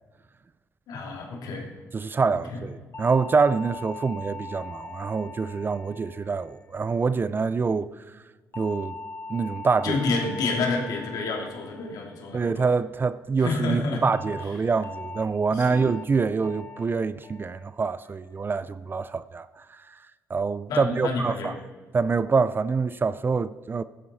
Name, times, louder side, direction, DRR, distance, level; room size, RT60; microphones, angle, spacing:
voice 1, 0.9-1.7 2.5-2.6 9.8-12.7 13.4-14.0 14.4-14.6 15.5-15.9 20.7-21.6, left 3 dB, 80° left, 2.9 m, -29 dB
voice 2, 1.9-2.7 3.0-7.9 8.6-9.0 9.3-10.0 12.3-19.6 20.3-21.5 21.9-23.8, right 4 dB, 35° right, 0.5 m, -25 dB
sound 1, 2.9-7.4 8.5-13.0 14.1-14.4 14.8-15.2 15.6-16.0 16.4-16.8 17.2-17.6 18.0-18.4, left 3 dB, 35° left, 1.3 m, -41 dB
16.0 x 11.5 x 4.2 m
cardioid pair, 75°, 6 cm